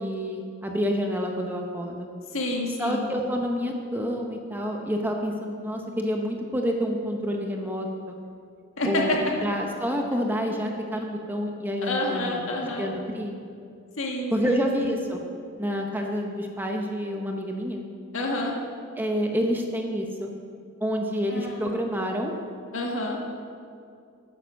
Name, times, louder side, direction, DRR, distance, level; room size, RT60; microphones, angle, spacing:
voice 1, 0.0-2.1 2.8-8.2 8.8-12.4 12.8-13.3 14.3-15.2 15.6-17.8 19.0-20.3 20.8-22.3, equal, 10° right, 2 dB, 0.8 m, -28 dB
voice 2, 2.3-3.1 8.8-9.2 11.8-12.9 14.0-14.6 14.9-15.0 18.1-18.5 21.3-21.7 22.7-23.2, left 2 dB, 65° left, -1 dB, 1.9 m, -28 dB
9.8 x 9.0 x 6.3 m, 2.4 s
head